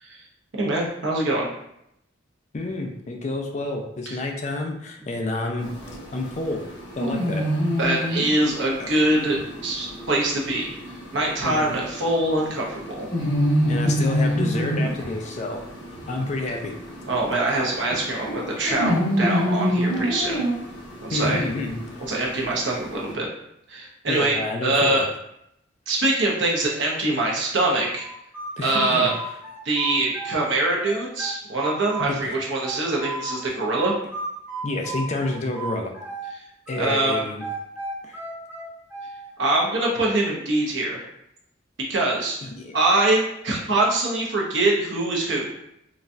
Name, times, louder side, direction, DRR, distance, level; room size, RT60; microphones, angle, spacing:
voice 1, 0.6-1.5 4.1-4.2 7.8-10.7 11.1-13.1 17.1-20.4 21.0-21.4 22.1-23.3 23.7-25.1 25.9-28.1 28.6-29.1 29.6-33.9 36.3-36.4 36.7-37.2 39.4-41.0 41.9-42.4 42.7-45.5, right 2 dB, 65° right, -2 dB, 0.8 m, -23 dB
voice 2, 2.5-5.7 6.1-6.7 7.0-7.4 8.8-8.9 11.4-11.7 13.7-15.6 16.1-16.7 17.3-17.4 21.1-22.0 24.1-25.0 28.6-29.1 32.0-32.3 34.6-35.9 36.7-37.4 38.0-38.2 42.4-42.7, left 2 dB, 35° left, 3 dB, 0.4 m, -29 dB
sound 1, 5.6-23.1, equal, 65° left, 1.2 m, -28 dB
sound 2, 28.0-30.5 30.8-33.4 33.8-36.3 36.7-39.3, right 3 dB, 10° right, 1.0 m, -34 dB
3.9 x 2.3 x 2.6 m, 0.79 s
head